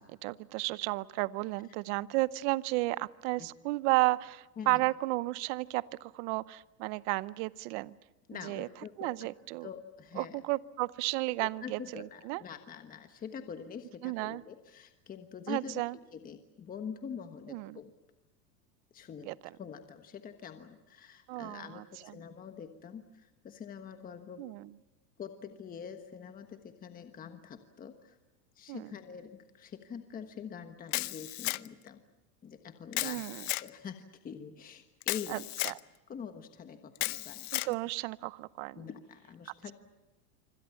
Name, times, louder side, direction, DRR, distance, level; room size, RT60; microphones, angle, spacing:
voice 1, 0.0-7.9 8.4-8.7 9.0-9.7 10.2-12.4 14.0-14.4 15.5-16.0 17.5-17.8 19.2-19.5 21.3-22.1 24.4-24.7 28.7-28.9 33.0-33.4 35.3-35.7 37.5-38.8, right 21 dB, 45° right, 18 dB, 0.8 m, -33 dB
voice 2, 8.3-9.1 9.6-10.4 11.4-15.8 16.1-17.9 18.9-19.3 19.6-24.5 25.2-28.2 28.5-32.0 32.4-33.2 33.6-35.4 35.6-35.7 36.1-37.8 38.7-39.7, left 7 dB, 20° left, 7 dB, 1.3 m, -45 dB
Camera, 30.9-31.9 32.9-33.7 35.0-35.8 37.0-37.7, left 20 dB, 65° left, 0.9 m, -34 dB
26.5 x 25.5 x 7.1 m, 1.0 s
supercardioid pair, 145°, 48 cm